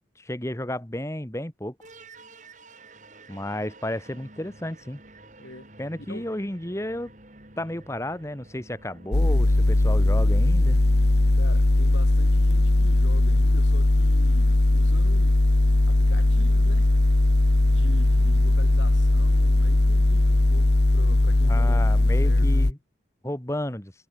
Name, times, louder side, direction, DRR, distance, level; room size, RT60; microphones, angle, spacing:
voice 1, 0.2-1.7 3.3-5.0 5.8-7.1 7.6-10.8 21.4-22.8 23.2-23.9, left 1 dB, 15° left, 1.5 m, -32 dB
sound 1, 1.8-20.8, right 1 dB, 40° right, 7.5 m, -50 dB
voice 2, 5.4-5.7 6.1-6.3 11.3-15.4 15.9-16.9 17.7-21.9 22.2-22.6, left 1 dB, 90° left, 6.6 m, -43 dB
sound 2, 9.1-22.7, left 2 dB, 65° left, 1.1 m, -19 dB
head